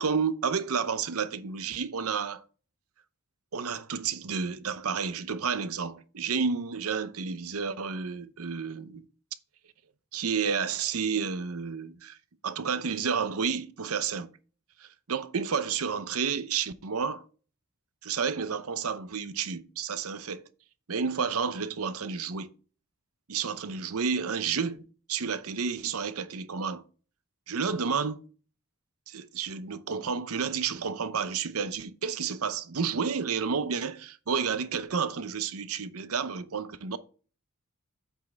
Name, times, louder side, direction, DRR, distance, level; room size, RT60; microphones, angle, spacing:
voice 1, 0.0-2.4 3.5-9.1 10.1-12.2 12.4-14.4 14.8-17.2 18.0-20.4 20.9-22.5 23.3-24.8 25.1-26.8 27.5-28.2 29.1-37.0, right 6 dB, 75° right, 0.7 m, -31 dB
8.2 x 6.0 x 3.5 m
head